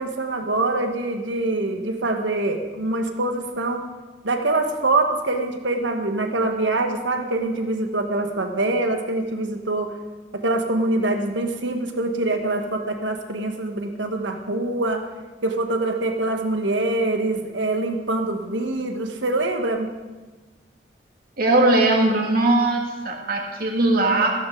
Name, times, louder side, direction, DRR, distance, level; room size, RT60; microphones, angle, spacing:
voice 1, 0.0-3.8 4.2-9.9 10.3-15.1 15.4-19.9, right 2 dB, 80° right, 5 dB, 1.5 m, -24 dB
voice 2, 21.4-24.3, right 2 dB, 50° right, 1 dB, 2.4 m, -19 dB
15.5 x 13.5 x 3.9 m, 1.3 s
head